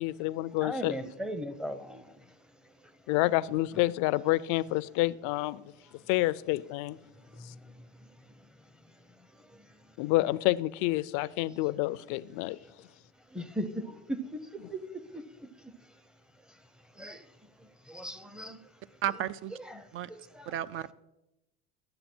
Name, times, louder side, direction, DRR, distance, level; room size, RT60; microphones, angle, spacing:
voice 1, 0.0-0.9 3.1-5.7 6.1-7.0 7.4-7.5 10.0-12.6, left 18 dB, 65° left, 0.5 m, -28 dB
voice 2, 0.6-2.3 2.6-2.9 7.2-8.1 8.3-8.5 9.3-10.0 13.3-15.9 16.5-16.6 16.9-17.3 17.6-18.7 19.6-20.5, equal, ahead, 0.7 m, -40 dB
voice 3, 19.0-19.5 19.9-20.1 20.5-20.9, right 10 dB, 40° right, 0.5 m, -33 dB
11.5 x 7.9 x 4.4 m
supercardioid pair, 100°, 32 cm